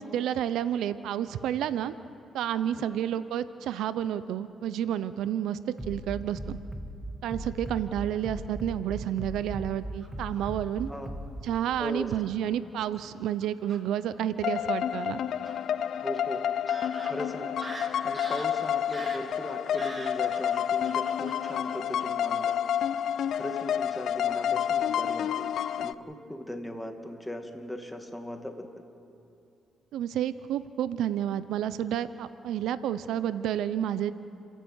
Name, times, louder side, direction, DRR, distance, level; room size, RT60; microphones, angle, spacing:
voice 1, 0.0-1.9 2.3-5.6 5.9-6.6 7.2-10.9 11.4-15.2 29.9-34.1, right 10 dB, 80° right, 14 dB, 0.6 m, -30 dB
Bass drum, 5.8-11.4, equal, 15° right, 1.7 m, -38 dB
Fowl / Bird vocalization bird call bird song, 10.0-10.7 11.5-12.2 13.0-13.1 13.4-13.8 15.4-15.6 16.1-16.2 16.7-22.6 22.8-23.1 23.4-23.7 24.0-24.2, right 2 dB, 30° right, 2.7 m, -45 dB
voice 2, 11.8-12.1 16.0-16.4 17.0-17.5 18.0-22.6 23.3-28.7, equal, 5° left, 4 dB, 2.2 m, -38 dB
sound 1, 14.4-25.9, left 9 dB, 70° left, 0.5 m, -29 dB
30.0 x 12.0 x 8.2 m, 2.6 s
cardioid pair, 90°, 0 cm